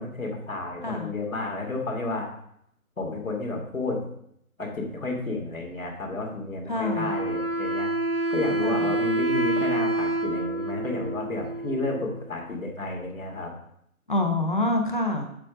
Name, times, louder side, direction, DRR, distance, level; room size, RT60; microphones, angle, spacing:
voice 1, 0.0-2.3 3.0-4.1 4.6-7.9 8.3-13.5, left 2 dB, 65° left, 0 dB, 2.4 m, -31 dB
voice 2, 6.7-7.1 8.6-8.9 14.1-15.2, left 2 dB, 35° left, 4 dB, 1.0 m, -26 dB
Wind instrument woodwind instrument, 6.8-12.3, right 1 dB, 45° right, 0.4 m, -27 dB
7.4 x 6.8 x 3.7 m, 0.73 s
figure-of-eight pair, 175°, 43 cm